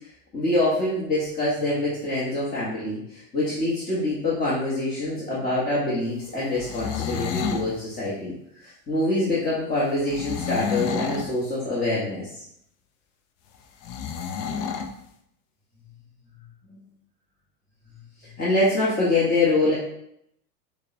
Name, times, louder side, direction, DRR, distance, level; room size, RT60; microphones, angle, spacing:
voice 1, 0.3-8.3 8.6-12.3 16.7-16.8 18.4-19.7, left 2 dB, 20° left, -9 dB, 1.1 m, -25 dB
sound 1, 6.5-7.7 10.1-11.3 13.8-14.9, left 6 dB, 40° left, 0.4 m, -29 dB
6.4 x 2.2 x 2.6 m, 0.74 s
hypercardioid pair, 110°, 46 cm